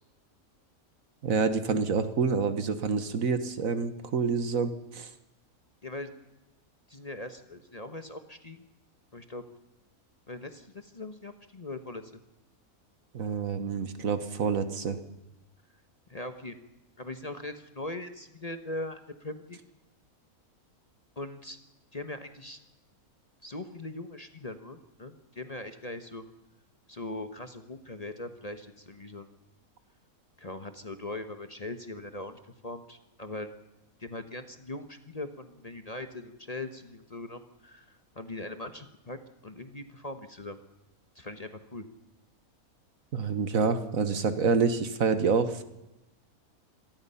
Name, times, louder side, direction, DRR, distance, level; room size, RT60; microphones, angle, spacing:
voice 1, 1.2-5.1 13.1-15.0 43.1-45.6, right 5 dB, 70° right, 11 dB, 1.7 m, -27 dB
voice 2, 6.9-8.7 9.1-9.4 10.3-12.1 16.1-16.6 17.0-19.6 21.2-21.6 21.9-22.6 23.4-26.2 26.9-29.3 30.4-33.5 34.0-39.2 39.4-40.6 41.1-41.8, left 2 dB, 30° left, 8 dB, 1.1 m, -40 dB
26.0 x 18.5 x 5.7 m, 0.95 s
omnidirectional pair, 1.5 m